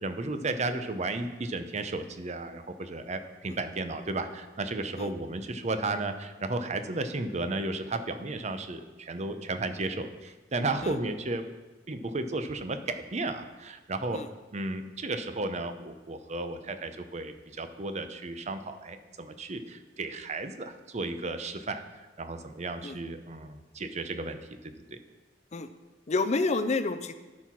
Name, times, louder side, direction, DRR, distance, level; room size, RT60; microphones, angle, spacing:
voice 1, 0.0-11.4 11.9-14.2 14.5-21.8 22.2-24.4 24.6-25.0, right 2 dB, 40° right, 8 dB, 0.7 m, -34 dB
voice 2, 26.1-27.1, left 3 dB, 40° left, 11 dB, 0.5 m, -29 dB
12.5 x 4.7 x 5.9 m, 1.2 s
head